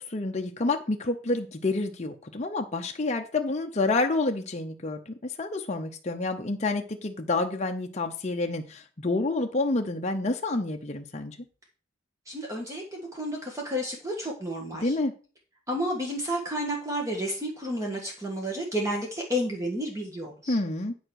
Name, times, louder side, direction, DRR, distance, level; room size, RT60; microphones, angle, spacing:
voice 1, 0.1-11.4 14.8-15.1 20.5-20.9, left 2 dB, 35° left, 3 dB, 0.7 m, -28 dB
voice 2, 12.2-14.9 15.7-20.6, equal, 15° right, 0 dB, 1.5 m, -31 dB
9.4 x 4.9 x 6.3 m, 0.38 s
head